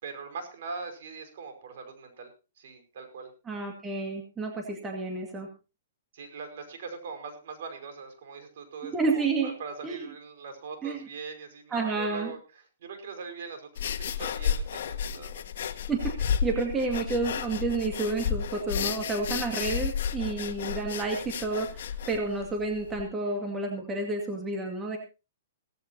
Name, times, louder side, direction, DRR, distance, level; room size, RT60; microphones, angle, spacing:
voice 1, 0.0-2.3 2.6-3.3 6.1-12.4 12.8-15.4, right 5 dB, 60° right, 6 dB, 5.3 m, -41 dB
voice 2, 3.5-5.5 8.8-9.5 9.8-10.0 10.8-11.1 11.7-12.3 15.9-16.1 16.4-25.0, right 3 dB, 15° right, 2 dB, 2.2 m, -30 dB
sound 1, 13.8-23.0, left 7 dB, 65° left, 1.6 m, -32 dB
17.5 x 15.5 x 2.9 m, 0.30 s
hypercardioid pair, 155°, 0 cm